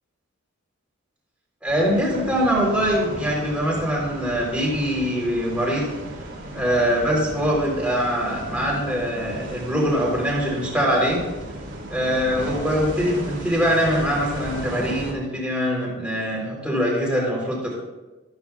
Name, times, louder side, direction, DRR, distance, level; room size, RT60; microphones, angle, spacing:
voice 1, 1.6-5.8 6.5-11.2 11.9-17.7, equal, 5° right, -4 dB, 3.7 m, -23 dB
sound 1, 1.6-15.1, right 1 dB, 60° right, 2.9 m, -35 dB
13.0 x 13.0 x 2.4 m, 1.1 s
head